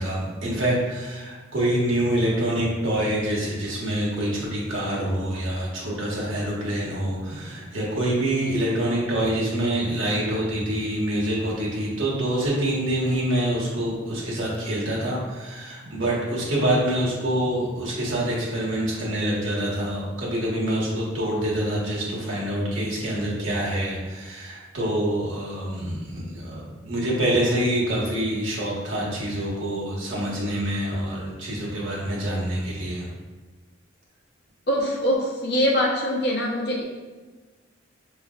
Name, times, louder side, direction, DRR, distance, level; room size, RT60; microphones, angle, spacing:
voice 1, 0.0-33.1, right 1 dB, 85° right, -5 dB, 1.3 m, -26 dB
voice 2, 34.7-36.8, equal, 55° left, -3 dB, 0.8 m, -23 dB
5.5 x 3.1 x 2.4 m, 1.3 s
head